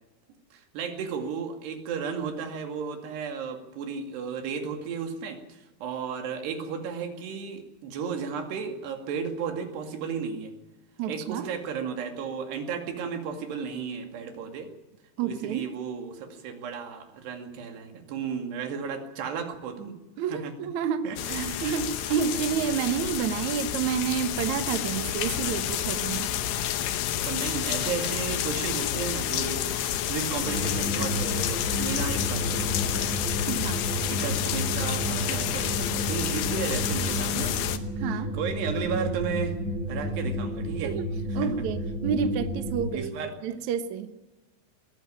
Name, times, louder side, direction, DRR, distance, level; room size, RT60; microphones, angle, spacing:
voice 1, 0.5-10.5 11.1-14.7 15.2-20.0 20.3-20.5 21.0-21.6 22.0-22.1 27.2-33.2 34.1-37.6 38.1-39.6 39.9-41.0 41.3-41.5 42.9-43.3, right 6 dB, 85° right, 5 dB, 4.4 m, -34 dB
voice 2, 11.0-11.5 15.2-15.7 20.2-26.3 33.5-33.8 38.0-38.4 40.8-43.1 43.4-44.1, right 7 dB, 65° right, 9 dB, 2.1 m, -29 dB
sound 1, 21.2-37.8, left 11 dB, 70° left, 2.5 m, -29 dB
sound 2, 30.4-42.9, equal, 20° right, 2.4 m, -32 dB
21.0 x 14.0 x 10.0 m, 1.0 s
omnidirectional pair, 4.7 m